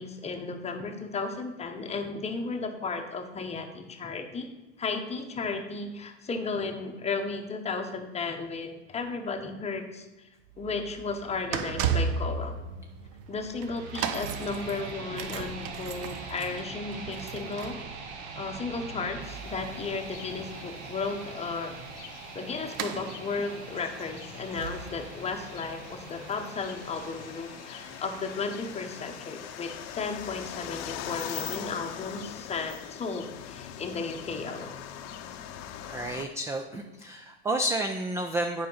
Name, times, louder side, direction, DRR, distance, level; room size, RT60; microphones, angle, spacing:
voice 1, 0.0-4.5 4.8-10.3 10.6-12.5 13.3-17.8 18.4-21.7 22.3-34.8, left 4 dB, 20° left, 5 dB, 1.0 m, -34 dB
sound 1, 10.4-27.4 28.1-28.2, right 6 dB, 50° right, 0.8 m, -37 dB
sound 2, 13.5-31.5, right 4 dB, 80° right, 1.3 m, -44 dB
sound 3, 19.2-36.2, left 10 dB, 50° left, 0.7 m, -43 dB
voice 2, 35.9-38.7, right 1 dB, 10° right, 5 dB, 0.3 m, -30 dB
7.5 x 5.1 x 5.5 m, 1.1 s
hypercardioid pair, 110°, 33 cm